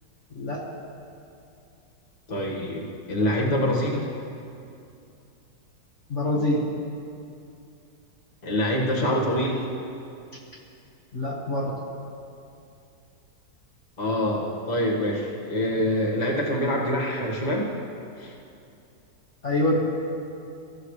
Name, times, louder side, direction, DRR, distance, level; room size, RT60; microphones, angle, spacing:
voice 1, 2.3-4.1 8.4-9.7 14.0-17.7 18.2-18.3, equal, 25° left, -3 dB, 1.8 m, -25 dB
voice 2, 6.1-6.7 11.1-11.7 19.4-19.8, left 1 dB, 40° left, -4 dB, 1.8 m, -25 dB
23.5 x 14.0 x 3.3 m, 2.6 s
omnidirectional pair, 2.0 m